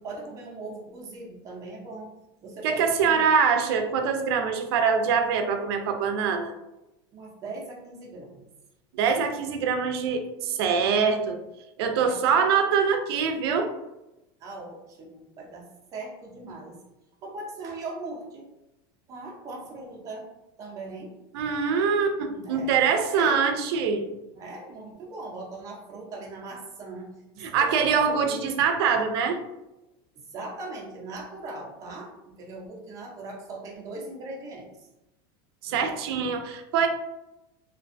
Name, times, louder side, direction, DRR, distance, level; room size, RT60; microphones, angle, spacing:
voice 1, 0.0-2.1 2.4-3.4 7.1-8.5 9.4-9.5 12.0-12.4 14.4-16.8 17.2-18.5 19.1-20.3 20.6-21.1 22.2-23.4 24.3-28.4 30.2-34.9, right 2 dB, 25° right, -2 dB, 0.5 m, -40 dB
voice 2, 2.6-6.5 8.9-11.4 11.8-13.7 21.3-24.1 27.4-29.4 35.6-36.9, right 6 dB, 85° right, 6 dB, 0.4 m, -24 dB
2.5 x 2.2 x 2.5 m, 0.95 s
supercardioid pair, 160°, 13 cm